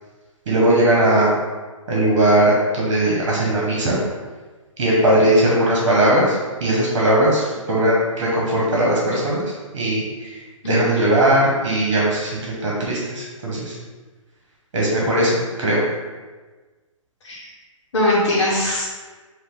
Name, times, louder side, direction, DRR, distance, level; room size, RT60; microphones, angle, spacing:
voice 1, 0.5-1.3 1.9-4.0 4.8-9.4 9.7-10.4 10.6-13.8 14.7-15.3 15.6-15.8, right 1 dB, 45° right, -4 dB, 1.4 m, -18 dB
voice 2, 10.6-11.0 17.2-17.5 17.9-18.8, left 1 dB, 55° left, -6 dB, 1.3 m, -21 dB
4.7 x 2.8 x 3.9 m, 1.3 s
hypercardioid pair, 140°, 17 cm